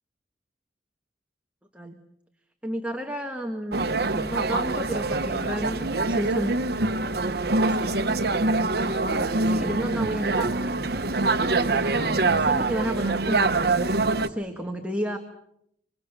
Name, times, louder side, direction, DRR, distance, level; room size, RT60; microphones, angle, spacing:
voice 1, 2.6-3.8 4.1-6.6 7.4-7.9 8.8-11.0 11.5-13.7 14.2-15.2, equal, 5° right, 3 dB, 1.5 m, -32 dB
sound 1, 3.7-14.3, right 3 dB, 60° right, 1.2 m, -24 dB
26.5 x 25.0 x 6.7 m, 0.77 s
head